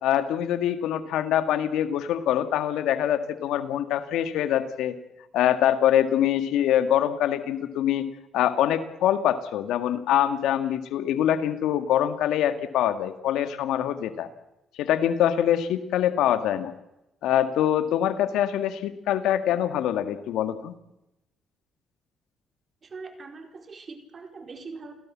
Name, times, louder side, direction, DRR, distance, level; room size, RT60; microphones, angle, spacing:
voice 1, 0.0-5.0 5.3-14.3 14.8-16.7 17.2-20.7, left 11 dB, 90° left, 10 dB, 1.8 m, -24 dB
voice 2, 22.8-24.9, right 4 dB, 40° right, 5 dB, 4.5 m, -42 dB
29.0 x 17.5 x 7.4 m, 0.91 s
cardioid pair, 90°, 0 cm